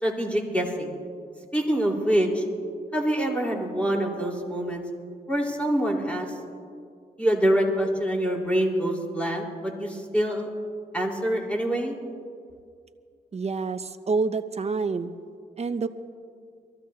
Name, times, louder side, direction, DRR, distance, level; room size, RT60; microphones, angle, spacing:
voice 1, 0.0-0.9 1.5-2.4 2.9-4.8 5.3-6.3 7.2-10.5 10.9-12.0, right 1 dB, 5° left, -2 dB, 4.4 m, -25 dB
voice 2, 13.3-15.1 15.6-15.9, right 4 dB, 40° right, 10 dB, 0.9 m, -27 dB
24.0 x 14.5 x 2.9 m, 2.2 s
cardioid pair, 55°, 17 cm